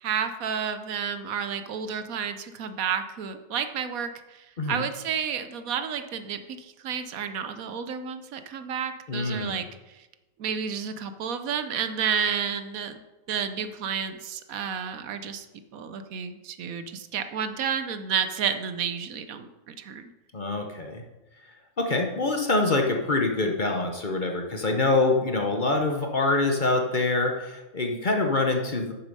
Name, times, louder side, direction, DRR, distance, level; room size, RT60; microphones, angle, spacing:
voice 1, 0.0-10.1 10.4-13.0 13.3-15.4 15.7-20.1, right 7 dB, 75° right, 10 dB, 1.1 m, -31 dB
voice 2, 9.1-9.6 20.3-21.0 21.8-28.9, left 2 dB, 40° left, 3 dB, 0.9 m, -25 dB
8.6 x 7.1 x 5.3 m, 1.1 s
omnidirectional pair, 1.5 m